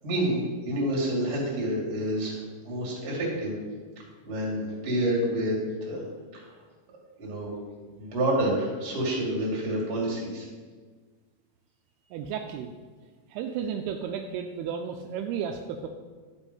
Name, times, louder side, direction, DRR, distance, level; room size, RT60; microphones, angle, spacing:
voice 1, 0.0-3.6 4.2-5.6 5.9-6.0 6.3-6.4 7.2-7.5 8.0-10.5, right 1 dB, 40° right, -4 dB, 2.9 m, -28 dB
voice 2, 12.1-12.7 13.3-15.9, right 7 dB, 85° right, 4 dB, 2.5 m, -33 dB
12.0 x 4.5 x 5.3 m, 1.5 s
omnidirectional pair, 4.6 m